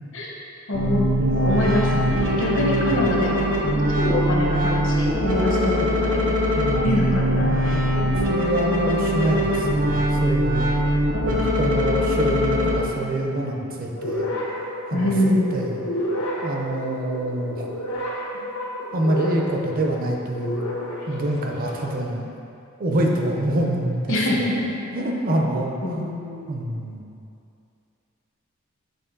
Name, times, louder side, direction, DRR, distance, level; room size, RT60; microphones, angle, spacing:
voice 1, 0.7-1.1 1.4-7.9 14.9-15.5 24.1-24.7 25.8-26.5, left 1 dB, 60° left, -3 dB, 1.1 m, -25 dB
sound 1, 0.7-12.7, equal, 60° right, 1.1 m, -22 dB
voice 2, 1.2-3.0 6.5-6.9 7.9-10.6 11.2-14.3 14.9-15.1 15.5-15.9 16.4-17.6 18.9-20.7 21.1-22.3 22.8-24.4 24.9-26.0 26.5-27.0, right 1 dB, 40° right, 0 dB, 0.6 m, -26 dB
sound 2, 13.9-21.9, left 1 dB, 85° left, 1.3 m, -31 dB
6.8 x 3.7 x 3.8 m, 2.6 s
head